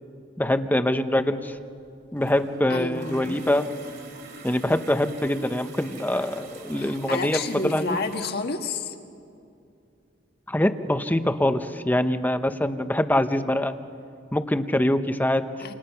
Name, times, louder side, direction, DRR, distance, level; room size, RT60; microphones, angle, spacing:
voice 1, 0.4-1.6 2.1-3.7 4.4-8.0 10.5-13.8 14.3-15.4, left 1 dB, 10° left, 9 dB, 0.9 m, -24 dB
sound 1, 1.3-8.3, right 3 dB, 60° right, 3.8 m, -46 dB
voice 2, 2.7-3.3 6.8-9.0 15.6-15.7, left 3 dB, 55° left, 4 dB, 1.8 m, -30 dB
28.5 x 27.5 x 5.8 m, 2.5 s
head